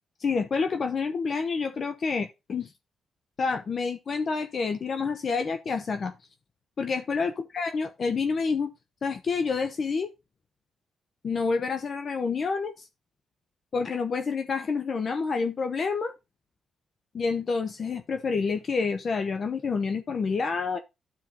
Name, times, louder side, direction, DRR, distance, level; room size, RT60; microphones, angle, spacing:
voice 1, 0.2-2.7 3.4-6.1 6.8-8.7 9.0-10.1 11.2-12.9 13.7-16.1 17.1-20.8, left 5 dB, 50° left, 0.8 m, -28 dB
13.0 x 4.5 x 2.7 m
cardioid pair, 75°, 0 cm